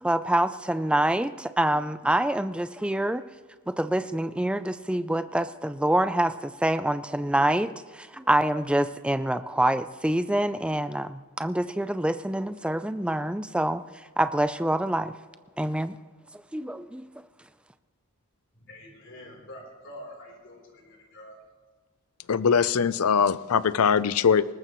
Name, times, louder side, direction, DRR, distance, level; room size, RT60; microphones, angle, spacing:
voice 1, 0.0-3.2 3.7-15.1 15.6-16.0 16.5-17.1, right 1 dB, 5° right, 12 dB, 0.4 m, -26 dB
voice 2, 18.5-21.4, left 1 dB, 55° left, 0 dB, 3.6 m, -46 dB
voice 3, 22.3-24.5, left 6 dB, 80° left, 17 dB, 0.5 m, -22 dB
20.5 x 19.0 x 3.1 m, 1.4 s
head